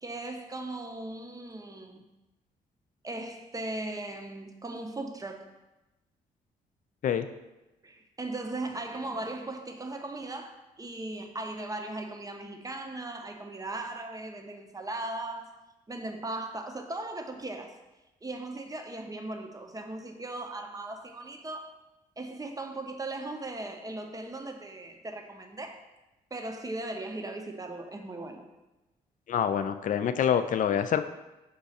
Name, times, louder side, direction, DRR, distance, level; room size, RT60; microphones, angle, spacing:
voice 1, 0.0-2.0 3.0-5.5 7.8-15.5 15.9-17.7 18.2-21.7 22.2-25.8 26.3-28.5, right 2 dB, 20° right, 4 dB, 0.7 m, -38 dB
voice 2, 29.3-31.0, left 8 dB, 45° left, 10 dB, 0.4 m, -26 dB
5.2 x 2.3 x 4.1 m, 1.0 s
hypercardioid pair, 50°, 18 cm